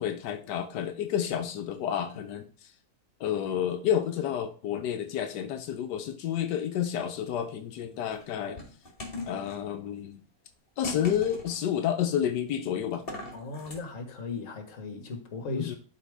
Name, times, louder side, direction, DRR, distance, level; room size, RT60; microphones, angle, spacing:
voice 1, 0.0-2.7 3.2-8.6 9.3-10.2 10.8-13.0 15.5-15.8, left 9 dB, 90° left, 1.3 m, -30 dB
sound 1, 6.8-7.4 8.1-9.6 10.8-11.6 12.9-13.8, left 1 dB, 35° left, 2.3 m, -40 dB
voice 2, 13.3-15.7, left 3 dB, 55° left, 1.7 m, -37 dB
11.5 x 4.9 x 3.5 m
omnidirectional pair, 1.8 m